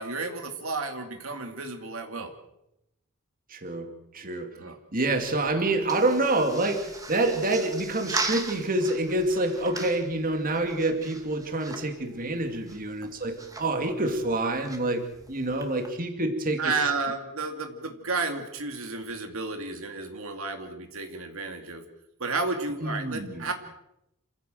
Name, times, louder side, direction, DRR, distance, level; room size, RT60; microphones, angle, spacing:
voice 1, 0.0-2.3 4.6-4.8 13.0-13.1 16.6-21.8 22.2-23.5, right 3 dB, 65° right, 5 dB, 2.4 m, -32 dB
voice 2, 3.5-4.5 4.9-16.7 22.8-23.4, right 2 dB, 40° right, 5 dB, 2.4 m, -27 dB
sound 1, 5.0-15.9, right 3 dB, 15° right, 2.5 m, -39 dB
28.0 x 15.5 x 7.8 m, 0.85 s
head